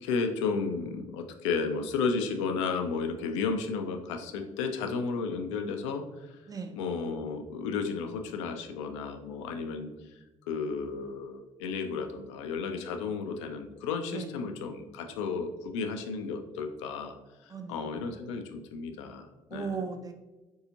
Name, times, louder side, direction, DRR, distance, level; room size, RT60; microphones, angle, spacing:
voice 1, 0.0-6.0 6.8-9.9 10.5-17.1 17.7-19.7, left 5 dB, 75° left, 6 dB, 0.4 m, -33 dB
voice 2, 17.5-18.0 19.5-20.1, right 5 dB, 25° right, 5 dB, 0.5 m, -37 dB
3.9 x 2.7 x 2.7 m, 1.1 s
hypercardioid pair, 50°, 15 cm